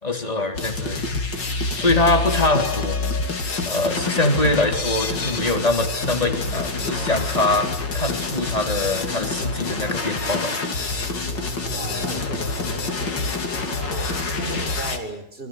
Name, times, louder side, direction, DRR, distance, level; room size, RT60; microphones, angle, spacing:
voice 1, 0.0-1.1 1.8-3.0 3.6-10.5, left 2 dB, 20° left, 4 dB, 3.7 m, -23 dB
sound 1, 0.5-15.0, left 3 dB, 80° left, 3.7 m, -27 dB
voice 2, 3.8-4.3 11.7-15.5, right 1 dB, 30° right, 8 dB, 4.2 m, -36 dB
26.0 x 25.5 x 7.9 m, 0.74 s
omnidirectional pair, 1.9 m